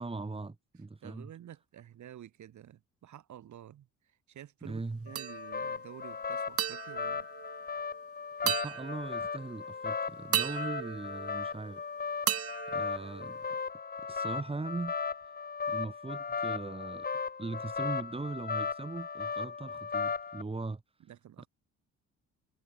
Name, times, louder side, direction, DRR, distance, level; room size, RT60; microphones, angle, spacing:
voice 1, 0.0-1.3 4.6-5.1 8.4-11.8 12.7-13.4 14.1-14.9 15.7-17.1 17.4-20.8 21.4-21.5, right 3 dB, 20° right, 2.8 m, -39 dB
voice 2, 1.0-7.3 21.0-21.5, right 11 dB, 70° right, 7.8 m, -50 dB
sound 1, 5.1-20.4, left 5 dB, 30° left, 1.8 m, -37 dB
sound 2, 5.2-5.8 6.6-8.0 8.5-9.5 10.3-11.8 12.3-13.7, right 10 dB, 50° right, 0.8 m, -36 dB
cardioid pair, 90°, 30 cm